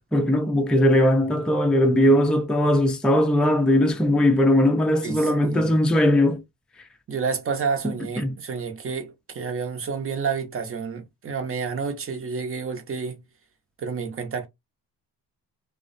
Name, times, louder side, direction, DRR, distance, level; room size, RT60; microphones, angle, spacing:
voice 1, 0.1-6.4 8.2-8.3, left 1 dB, ahead, 0.4 m, -19 dB
voice 2, 4.9-5.8 7.1-13.2 13.8-14.5, right 5 dB, 35° right, 0.8 m, -30 dB
2.3 x 2.1 x 2.5 m
cardioid pair, 85°, 37 cm